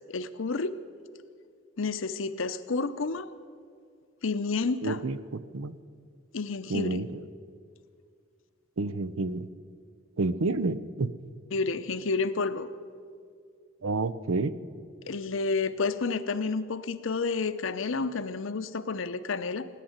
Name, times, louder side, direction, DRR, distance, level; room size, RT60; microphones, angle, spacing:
voice 1, 0.1-0.8 1.8-3.3 4.2-5.0 6.3-7.0 11.5-12.7 15.1-19.7, left 4 dB, 75° left, 12 dB, 0.7 m, -30 dB
voice 2, 4.8-5.8 6.7-7.2 8.8-9.5 10.2-11.1 13.8-14.6, right 3 dB, 85° right, 15 dB, 0.6 m, -29 dB
17.5 x 10.0 x 8.0 m, 2.1 s
head